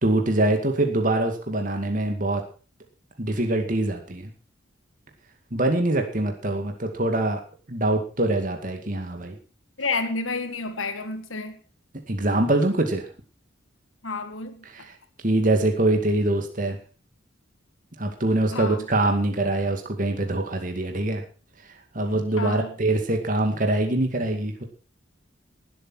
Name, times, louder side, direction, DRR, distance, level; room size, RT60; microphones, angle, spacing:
voice 1, 0.0-2.4 3.2-4.3 5.5-7.4 7.7-9.4 12.1-13.1 14.7-14.9 15.2-16.8 18.0-21.2 21.9-24.6, right 2 dB, 40° right, 2.3 m, -24 dB
voice 2, 9.8-11.6 14.0-14.6 18.5-18.8 22.4-22.7, left 3 dB, 90° left, 1.9 m, -30 dB
19.0 x 8.3 x 6.2 m
head